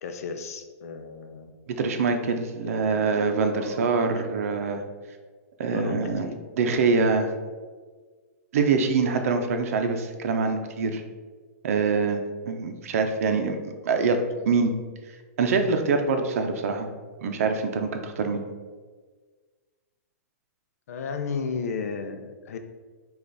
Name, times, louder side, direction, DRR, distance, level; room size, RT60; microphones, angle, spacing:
voice 1, 0.0-1.5 2.6-2.9 3.4-3.8 5.7-6.4 14.0-14.1 14.4-14.5 20.9-22.6, left 5 dB, 70° left, 7 dB, 0.5 m, -34 dB
voice 2, 1.7-4.8 5.6-6.3 6.6-7.3 8.5-11.0 11.6-14.2 14.5-14.7 15.4-16.9 17.2-18.4, right 4 dB, 65° right, 6 dB, 0.6 m, -24 dB
5.3 x 2.4 x 3.9 m, 1.5 s
hypercardioid pair, 160°, 8 cm